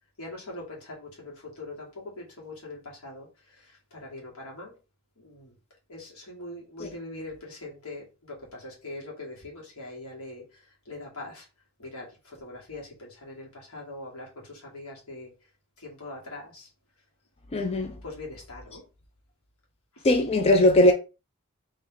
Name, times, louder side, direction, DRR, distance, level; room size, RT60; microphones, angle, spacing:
voice 1, 0.2-4.7 5.1-5.6 5.9-11.5 11.8-15.3 15.8-16.7 18.0-18.8 19.9-20.1, left 2 dB, 75° left, 1.8 m, -42 dB
voice 2, 17.5-18.0 20.0-20.9, left 1 dB, 30° left, 0.4 m, -20 dB
3.0 x 3.0 x 3.7 m
head